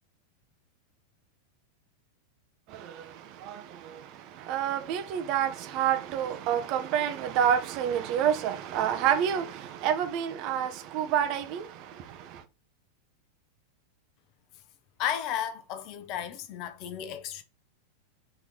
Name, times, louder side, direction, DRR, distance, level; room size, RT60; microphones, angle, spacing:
voice 1, 2.7-12.4, right 9 dB, 40° right, 0.6 m, -29 dB
voice 2, 15.0-17.4, left 9 dB, 40° left, 0.6 m, -33 dB
4.4 x 2.9 x 3.6 m
figure-of-eight pair, 90°, 0 cm